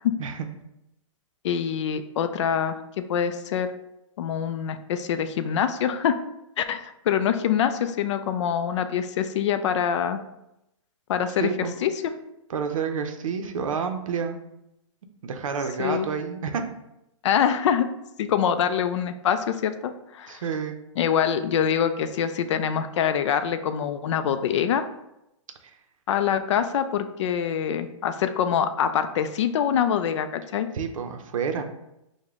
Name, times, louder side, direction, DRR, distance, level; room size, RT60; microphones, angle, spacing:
voice 1, 1.4-3.7 4.2-6.2 6.6-10.2 11.1-12.1 15.8-16.1 17.2-17.9 18.2-20.4 21.0-24.9 26.1-30.7, left 8 dB, 60° left, 10 dB, 0.4 m, -25 dB
voice 2, 11.4-11.7 12.5-14.4 15.2-16.6 20.3-20.8 30.7-31.6, right 6 dB, 85° right, 6 dB, 0.6 m, -29 dB
4.8 x 2.1 x 3.5 m, 0.87 s
hypercardioid pair, 145°, 17 cm